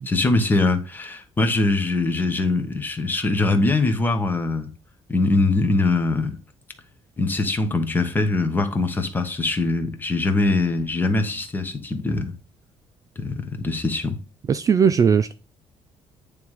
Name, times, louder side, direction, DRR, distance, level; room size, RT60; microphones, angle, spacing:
voice 1, 0.1-4.7 5.1-6.4 7.2-12.3 13.2-14.2, left 2 dB, 15° left, 1.2 m, -22 dB
voice 2, 14.5-15.3, right 6 dB, 30° right, 0.3 m, -18 dB
9.3 x 3.5 x 4.8 m
cardioid pair, 150°, 11 cm